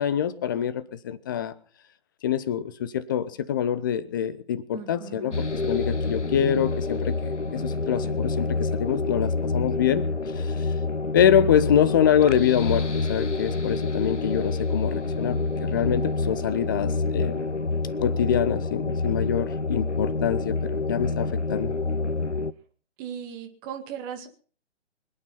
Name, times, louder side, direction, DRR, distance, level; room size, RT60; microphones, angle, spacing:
voice 1, 0.0-1.5 2.2-10.0 10.4-10.7 11.1-17.4 18.0-21.7, left 9 dB, 20° left, 0.7 m, -25 dB
voice 2, 4.7-5.4 23.0-24.3, right 9 dB, 20° right, 2.1 m, -37 dB
sound 1, 5.3-22.5, left 3 dB, 90° left, 1.0 m, -27 dB
25.0 x 9.1 x 5.6 m
figure-of-eight pair, 135°, 34 cm